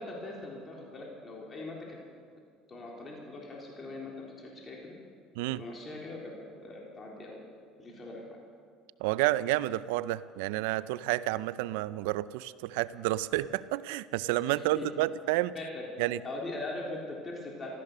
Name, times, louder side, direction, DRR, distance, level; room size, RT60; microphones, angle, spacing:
voice 1, 0.0-2.0 2.7-5.0 5.6-6.4 6.6-7.4 7.8-8.4 14.4-14.9 15.5-17.7, left 2 dB, 30° left, -2 dB, 3.6 m, -41 dB
voice 2, 9.0-15.5 16.0-16.2, right 16 dB, 85° right, 18 dB, 0.4 m, -30 dB
15.0 x 13.5 x 6.7 m, 2.1 s
supercardioid pair, 95°, 0 cm